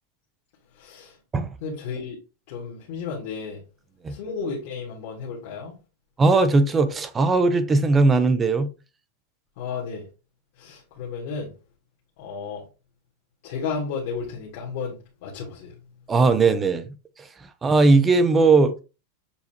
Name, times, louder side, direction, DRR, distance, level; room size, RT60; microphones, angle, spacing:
voice 1, 0.8-1.1 1.6-2.2 2.5-3.6 4.1-5.7 9.6-10.1 10.6-11.5 12.2-12.6 13.4-15.7, left 5 dB, 45° left, 1.4 m, -33 dB
voice 2, 6.2-8.7 16.1-16.9 17.6-18.7, right 3 dB, 10° right, 0.4 m, -18 dB
7.0 x 2.6 x 2.8 m
supercardioid pair, 170°, 0 cm